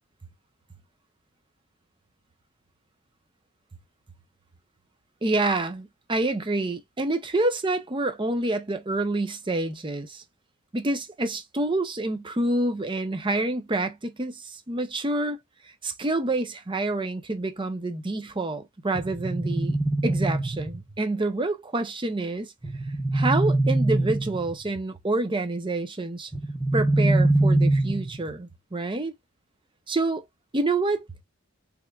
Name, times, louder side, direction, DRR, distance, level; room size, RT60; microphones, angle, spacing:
voice 1, 5.2-10.2 10.7-15.4 15.8-19.8 20.0-22.5 23.1-26.3 26.7-29.1 29.9-30.2 30.5-31.1, right 2 dB, 25° right, 0.7 m, -27 dB
sound 1, 18.9-21.0 22.6-24.7 26.3-28.3, right 2 dB, ahead, 0.8 m, -24 dB
3.6 x 3.2 x 2.2 m
head